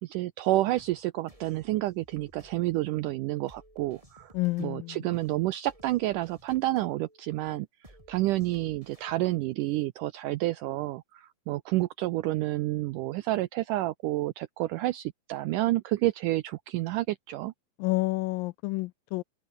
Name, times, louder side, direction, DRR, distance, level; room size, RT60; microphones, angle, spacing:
voice 1, 0.0-4.3 4.6-7.7 8.1-17.5, right 17 dB, 90° right, 1.8 m, -29 dB
sound 1, 0.8-9.4, right 1 dB, 10° right, 6.0 m, -57 dB
voice 2, 4.3-5.0 17.8-19.2, left 21 dB, 85° left, 2.0 m, -29 dB
omnidirectional pair, 4.4 m